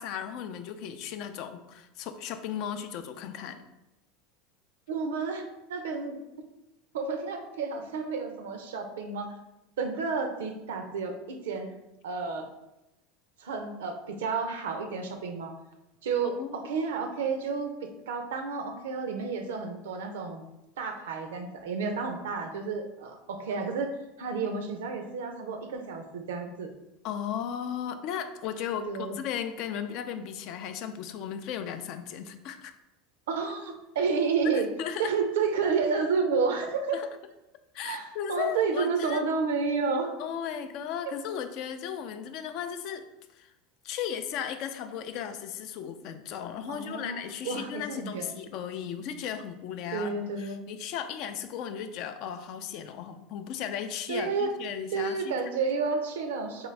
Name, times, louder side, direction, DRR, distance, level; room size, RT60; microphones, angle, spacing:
voice 1, 0.0-3.6 16.4-16.7 27.0-32.7 34.4-35.1 36.9-37.1 37.7-39.2 40.2-43.1 43.4-43.5 43.8-55.3, left 8 dB, 60° left, 9 dB, 0.4 m, -36 dB
voice 2, 4.9-6.2 6.9-9.3 9.8-11.7 12.0-12.5 13.4-15.5 16.0-20.4 20.8-23.9 24.2-26.7 28.9-29.2 33.3-34.7 35.0-37.0 37.8-40.1 46.7-47.2 47.4-48.3 49.9-50.6 54.1-54.5 54.9-56.7, right 5 dB, 85° right, 5 dB, 0.5 m, -31 dB
3.7 x 2.6 x 3.2 m, 0.93 s
hypercardioid pair, 100°, 0 cm